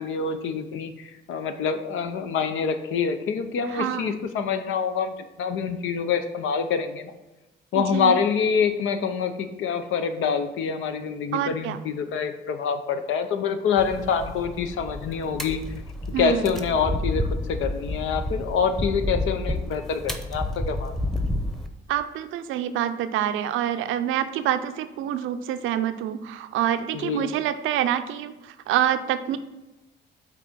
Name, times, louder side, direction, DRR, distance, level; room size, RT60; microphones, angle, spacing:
voice 1, 0.0-7.1 7.7-15.6 16.2-20.9 26.9-27.3, left 6 dB, 85° left, 8 dB, 0.8 m, -26 dB
voice 2, 3.7-4.1 7.7-8.2 11.3-11.8 16.1-16.5 21.9-29.4, right 11 dB, 90° right, 10 dB, 0.5 m, -26 dB
sound 1, 13.8-21.7, left 1 dB, ahead, 0.8 m, -30 dB
5.9 x 4.0 x 6.1 m, 1.0 s
cardioid pair, 90°, 20 cm